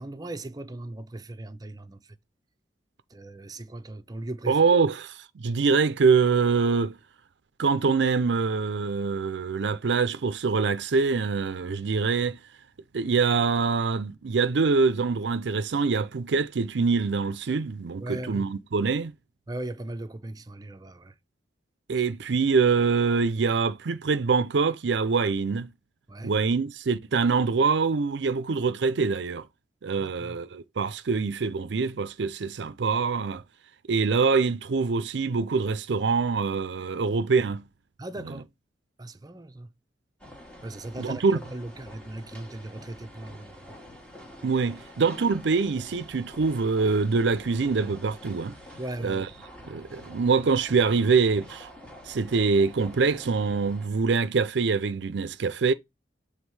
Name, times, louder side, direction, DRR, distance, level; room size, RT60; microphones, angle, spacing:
voice 1, 0.0-2.1 3.1-4.6 18.0-18.5 19.5-21.2 26.1-26.4 30.0-30.4 38.0-38.5 39.0-39.7 40.6-43.8 48.8-49.3, right 1 dB, 20° right, 0.7 m, -38 dB
voice 2, 4.5-7.0 7.6-12.4 12.9-19.1 21.9-25.7 26.2-29.5 29.8-33.4 33.9-37.7 38.3-38.4 41.0-41.4 44.4-48.6 49.0-49.3 49.6-51.7 52.1-55.7, right 4 dB, 75° right, 0.5 m, -24 dB
sound 1, 40.2-53.9, left 1 dB, 5° left, 1.3 m, -47 dB
7.3 x 3.5 x 4.7 m
head